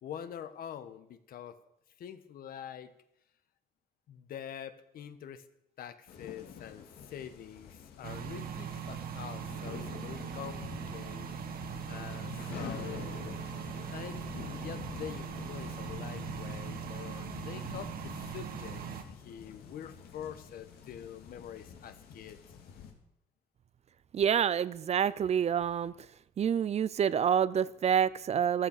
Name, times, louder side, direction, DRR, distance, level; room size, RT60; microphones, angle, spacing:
voice 1, 0.0-1.6 2.0-2.9 4.1-5.4 5.8-11.3 11.5-13.6 13.9-22.4, left 9 dB, 70° left, 11 dB, 1.4 m, -45 dB
sound 1, 6.1-22.9, left 7 dB, 90° left, 2.8 m, -47 dB
sound 2, 8.0-19.0, right 8 dB, 70° right, 1.6 m, -40 dB
voice 2, 24.1-25.9 26.4-28.7, right 8 dB, 45° right, 18 dB, 0.6 m, -27 dB
14.5 x 14.0 x 6.7 m, 0.82 s
cardioid pair, 125°, 16 cm